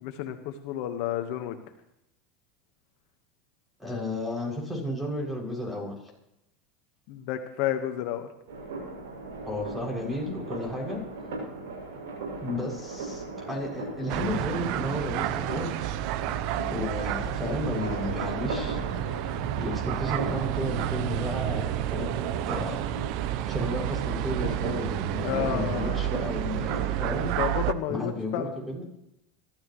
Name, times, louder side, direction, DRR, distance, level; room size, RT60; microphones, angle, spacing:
voice 1, 0.0-1.5 7.1-8.3 25.2-26.1 27.4-28.5, left 11 dB, 65° left, 7 dB, 1.5 m, -31 dB
voice 2, 3.8-5.9 9.4-11.0 12.4-15.9 16.7-18.8 19.6-22.1 22.4-23.2 23.5-27.3 27.9-28.9, left 1 dB, 10° right, 0 dB, 7.1 m, -33 dB
sound 1, 8.5-27.3, right 3 dB, 85° right, 7.3 m, -39 dB
sound 2, 14.1-27.7, right 12 dB, 60° right, 0.8 m, -30 dB
24.0 x 13.5 x 3.2 m, 0.83 s
hypercardioid pair, 105°, 0 cm